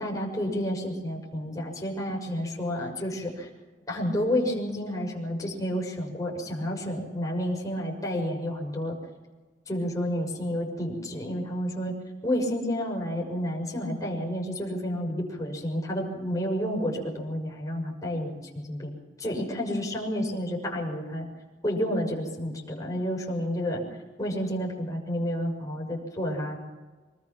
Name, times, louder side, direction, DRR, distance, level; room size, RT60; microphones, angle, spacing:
voice 1, 0.0-3.5 3.9-9.0 9.7-11.9 12.2-18.9 19.2-21.2 21.6-23.8 24.2-26.6, equal, 20° left, -1 dB, 6.2 m, -30 dB
25.5 x 20.0 x 6.1 m, 1.3 s
head